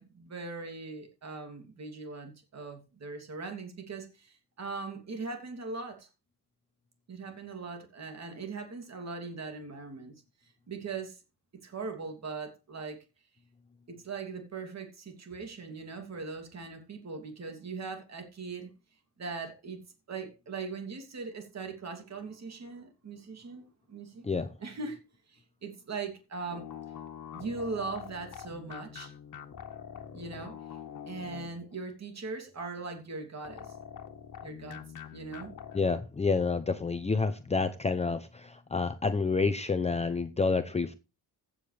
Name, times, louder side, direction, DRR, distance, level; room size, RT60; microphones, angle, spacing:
voice 1, 0.0-6.1 7.1-11.2 11.6-13.0 13.9-18.7 19.2-24.2 24.6-25.0 25.3-26.7 27.3-29.1 30.1-30.6 31.1-33.7 34.4-34.8 35.1-35.6, right 4 dB, 40° right, 3.0 m, -40 dB
sound 1, 26.5-31.8 33.4-36.0, left 8 dB, 50° left, 1.8 m, -45 dB
voice 2, 35.7-40.9, left 4 dB, 15° left, 0.8 m, -29 dB
15.5 x 8.9 x 3.4 m
cardioid pair, 145°, 40 cm